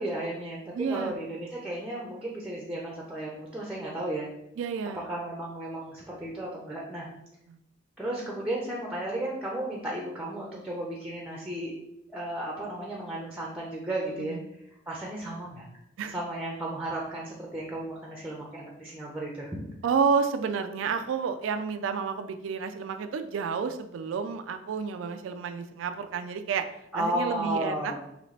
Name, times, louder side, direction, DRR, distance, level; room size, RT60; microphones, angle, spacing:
voice 1, 0.0-4.3 5.1-7.1 8.0-11.7 12.1-14.4 14.9-15.7 16.1-19.5 26.9-28.0, right 1 dB, 5° right, -3 dB, 0.6 m, -34 dB
voice 2, 0.7-1.1 4.6-5.1 7.5-7.6 14.2-14.4 16.0-16.2 19.8-26.7 26.9-27.9, right 6 dB, 80° right, 8 dB, 0.3 m, -30 dB
3.9 x 3.2 x 3.2 m, 0.81 s
head